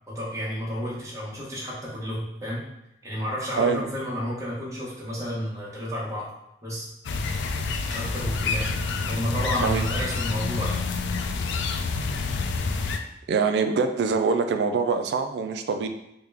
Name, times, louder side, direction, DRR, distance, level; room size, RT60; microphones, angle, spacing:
voice 1, 0.1-2.6 3.0-6.3 6.6-6.9 7.9-8.7 9.1-10.9, equal, 20° right, -7 dB, 0.9 m, -31 dB
sound 1, 7.0-13.0, left 4 dB, 80° left, 0.3 m, -28 dB
voice 2, 13.3-15.9, right 5 dB, 65° right, 7 dB, 0.3 m, -24 dB
3.6 x 2.2 x 3.3 m, 0.85 s
head